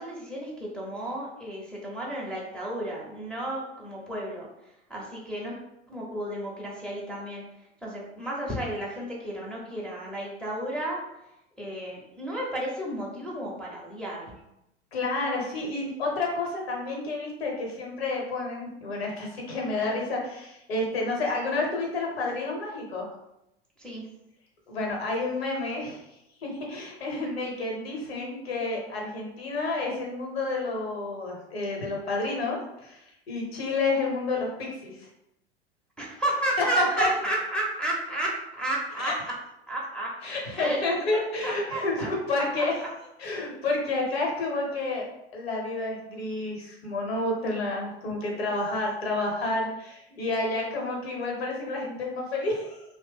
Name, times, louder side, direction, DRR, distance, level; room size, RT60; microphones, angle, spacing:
voice 1, 0.0-4.5 4.9-5.5 5.9-7.4 7.8-11.0 11.6-14.4 23.8-24.0 36.0-39.3 39.7-40.1 40.5-42.1 42.6-42.9 50.1-50.2, right 1 dB, 5° left, -5 dB, 0.6 m, -32 dB
voice 2, 14.9-23.1 24.7-26.0 26.4-35.1 36.6-37.1 39.0-39.1 40.2-42.7 43.2-52.8, left 2 dB, 70° left, 0 dB, 1.0 m, -30 dB
2.8 x 2.0 x 3.4 m, 0.86 s
figure-of-eight pair, 80°, 32 cm